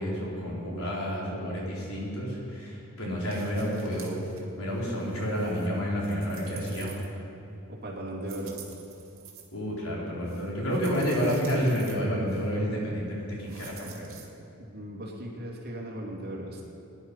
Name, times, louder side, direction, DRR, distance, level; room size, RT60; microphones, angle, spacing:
voice 1, 0.0-4.2 4.6-7.0 9.5-14.2, equal, 85° left, -4 dB, 4.3 m, -30 dB
sound 1, 3.3-4.4 4.7-7.4 8.2-9.4 10.3-12.0 12.3-12.5 13.4-14.3, right 8 dB, 70° right, 2.4 m, -49 dB
voice 2, 7.7-8.6 14.6-16.6, right 1 dB, 45° right, -2 dB, 2.7 m, -37 dB
20.5 x 10.5 x 5.7 m, 2.7 s
head